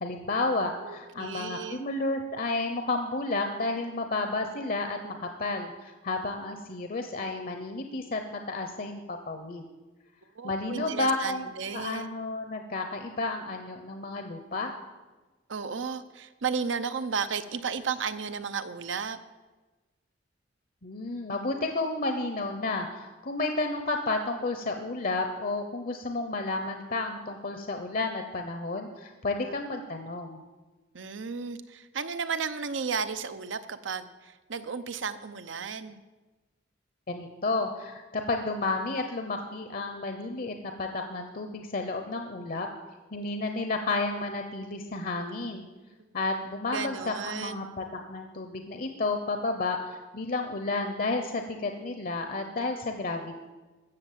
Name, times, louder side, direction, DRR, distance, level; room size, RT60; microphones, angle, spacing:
voice 1, 0.0-5.1 5.4-9.6 10.4-14.7 20.8-30.4 37.1-42.7 43.1-45.6 46.1-53.5, left 3 dB, 50° left, 5 dB, 0.9 m, -31 dB
voice 2, 0.8-1.8 10.3-12.1 15.5-19.2 29.4-29.6 30.9-36.0 46.7-47.7, right 5 dB, 80° right, 11 dB, 0.8 m, -34 dB
14.5 x 7.1 x 7.4 m, 1.2 s
head